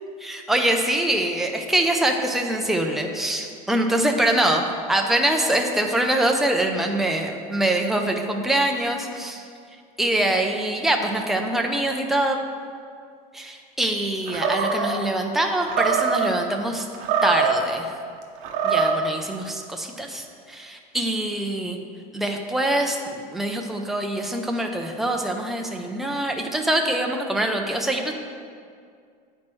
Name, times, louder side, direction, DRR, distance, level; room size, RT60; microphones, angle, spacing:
voice 1, 0.2-9.4 10.0-12.4 13.3-16.9 17.2-17.9 18.6-21.8 22.1-28.1, right 1 dB, ahead, 2 dB, 0.4 m, -24 dB
Animal, 14.3-15.0 15.7-16.3 16.9-17.7 18.4-19.1, right 5 dB, 35° right, 0.8 m, -23 dB
8.7 x 4.4 x 6.1 m, 2.2 s
supercardioid pair, 175°, 20 cm